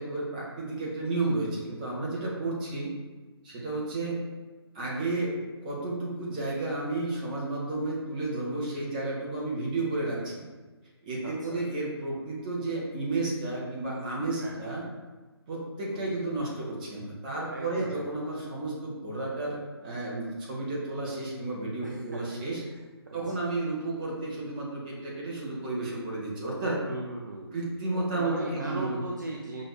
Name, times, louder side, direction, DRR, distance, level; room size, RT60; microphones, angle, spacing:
voice 1, 0.0-2.9 3.4-4.2 4.7-5.3 5.6-10.4 11.0-14.9 15.5-22.6 23.1-26.8 27.5-29.0, right 2 dB, 20° right, -5 dB, 0.8 m, -32 dB
voice 2, 11.2-11.7 14.4-14.7 15.9-16.2 17.5-18.3 21.8-22.2 23.1-23.4 26.8-27.5 28.2-29.6, right 2 dB, 45° right, -1 dB, 0.4 m, -38 dB
5.8 x 2.6 x 2.3 m, 1.3 s
figure-of-eight pair, 145°, 14 cm